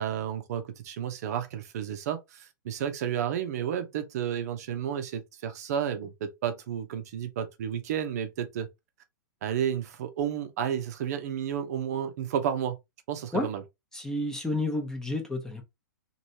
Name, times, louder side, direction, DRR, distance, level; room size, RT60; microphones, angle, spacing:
voice 1, 0.0-8.7 9.4-12.8 13.1-13.6, right 9 dB, 50° right, 0.6 m, -31 dB
voice 2, 13.9-15.6, left 1 dB, 5° left, 0.7 m, -30 dB
3.1 x 2.6 x 2.7 m
figure-of-eight pair, 115°, 11 cm